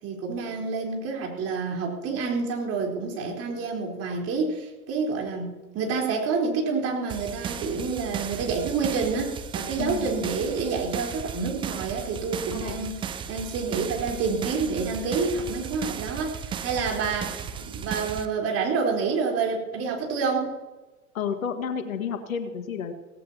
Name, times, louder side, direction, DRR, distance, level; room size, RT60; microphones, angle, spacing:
voice 1, 0.0-13.0 13.3-20.5, right 4 dB, 35° right, 0 dB, 4.3 m, -28 dB
sound 1, 7.1-18.3, right 7 dB, 10° right, 0.5 m, -35 dB
voice 2, 9.8-10.1 12.5-12.9 21.1-22.9, left 7 dB, 65° left, 7 dB, 1.9 m, -31 dB
17.5 x 16.5 x 3.0 m, 1.1 s
figure-of-eight pair, 100°, 44 cm